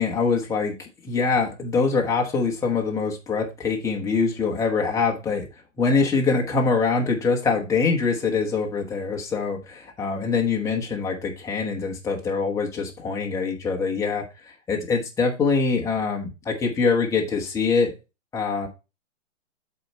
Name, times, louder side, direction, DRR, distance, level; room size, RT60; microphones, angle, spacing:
voice 1, 0.0-5.5 5.8-14.3 14.7-17.9 18.3-18.7, left 4 dB, 10° left, 0 dB, 1.0 m, -24 dB
7.5 x 4.3 x 4.5 m, 0.28 s
hypercardioid pair, 150°, 38 cm